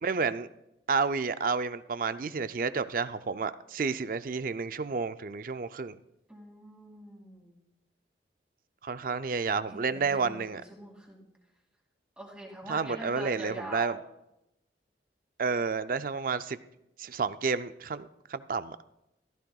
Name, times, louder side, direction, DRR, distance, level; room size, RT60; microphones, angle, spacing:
voice 1, 0.0-0.5 0.9-6.0 8.8-10.6 12.7-14.0 15.4-16.6 17.0-18.8, right 5 dB, 50° right, 12 dB, 0.4 m, -30 dB
voice 2, 6.3-7.6 9.7-11.3 12.2-14.0, right 1 dB, 5° right, -2 dB, 2.4 m, -44 dB
15.5 x 13.0 x 2.3 m, 0.86 s
head